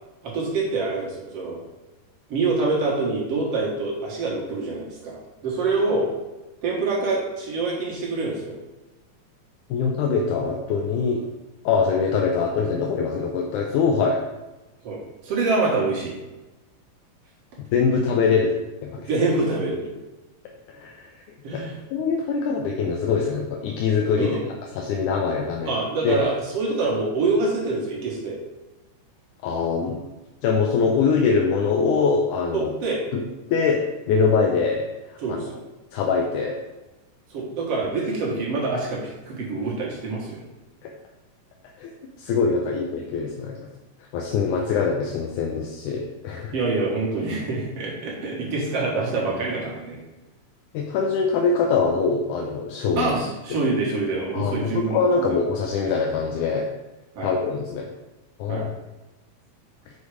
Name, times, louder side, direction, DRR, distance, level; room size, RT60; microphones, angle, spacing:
voice 1, 0.2-1.6 2.3-6.1 6.6-8.6 14.8-16.1 19.1-19.8 21.4-21.8 24.2-24.4 25.7-28.4 32.5-33.0 35.2-35.6 37.3-40.4 46.5-50.0 53.0-55.3 57.2-57.3 58.5-58.7, right 3 dB, 55° right, -4 dB, 2.3 m, -26 dB
voice 2, 9.7-11.3 11.7-14.2 17.7-18.6 18.8-19.0 20.7-21.1 21.5-21.6 21.9-24.4 24.8-25.7 26.0-26.2 29.4-30.1 30.4-32.7 33.1-35.4 35.9-36.6 40.8-40.9 41.8-41.9 42.2-43.7 44.1-46.6 50.7-53.1 53.5-53.6 54.3-56.7 57.2-57.9 58.4-58.7, left 5 dB, 75° left, 1 dB, 2.1 m, -23 dB
6.3 x 5.1 x 4.9 m, 1.1 s
omnidirectional pair, 3.7 m